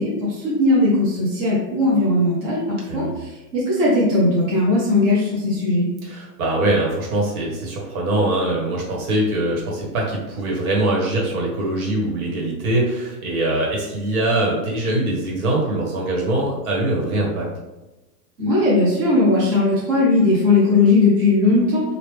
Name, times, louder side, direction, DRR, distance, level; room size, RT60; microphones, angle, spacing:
voice 1, 0.0-5.9 18.4-21.8, left 2 dB, 25° right, -6 dB, 0.4 m, -18 dB
voice 2, 6.0-17.5, right 1 dB, 60° right, -2 dB, 1.3 m, -22 dB
3.4 x 2.4 x 3.2 m, 1.0 s
supercardioid pair, 155°, 49 cm